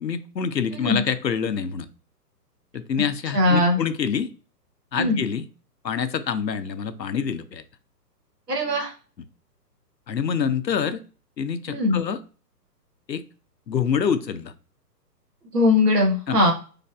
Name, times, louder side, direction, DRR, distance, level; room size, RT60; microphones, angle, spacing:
voice 1, 0.0-1.9 2.7-4.3 4.9-5.4 5.8-7.6 10.1-11.0 11.4-12.2 13.1-13.2 13.7-14.5 16.3-16.4, left 7 dB, 85° left, 12 dB, 0.6 m, -26 dB
voice 2, 0.7-1.0 3.3-3.8 5.0-5.2 8.5-8.9 11.7-12.0 15.5-16.5, left 2 dB, 70° right, 2 dB, 1.2 m, -20 dB
4.1 x 2.5 x 2.3 m, 0.37 s
figure-of-eight pair, 125°, 50 cm